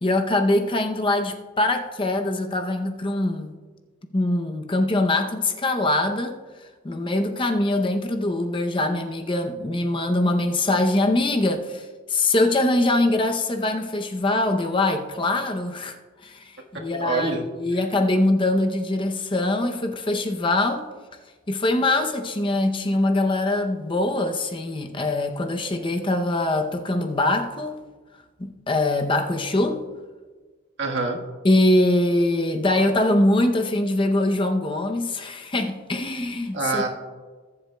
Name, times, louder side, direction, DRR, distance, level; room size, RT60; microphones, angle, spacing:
voice 1, 0.0-3.5 4.1-6.4 6.8-16.0 16.2-20.8 21.5-27.8 28.4-29.8 31.4-36.8, left 2 dB, 25° left, 0.6 m, -23 dB
voice 2, 16.7-17.4 30.8-31.2 36.5-36.9, right 3 dB, 55° right, 1.5 m, -26 dB
20.5 x 8.0 x 2.2 m
head